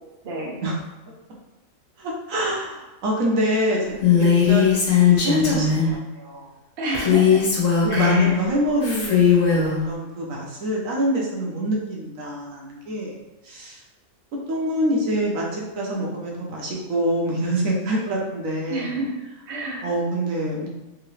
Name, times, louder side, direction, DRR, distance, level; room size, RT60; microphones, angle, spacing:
voice 1, 0.2-0.6 6.8-7.4 7.9-8.3 18.7-19.1 19.5-19.9, right 1 dB, 50° right, -2 dB, 0.9 m, -28 dB
voice 2, 2.0-6.5 7.8-13.2 13.4-13.8 14.5-18.9 19.8-20.7, right 1 dB, 80° right, -2 dB, 1.3 m, -26 dB
Female speech woman speaking, 4.0-5.9 6.9-8.3 8.8-9.8, left 7 dB, 70° left, 1.3 m, -18 dB
3.6 x 2.8 x 3.1 m, 1.1 s
omnidirectional pair, 1.4 m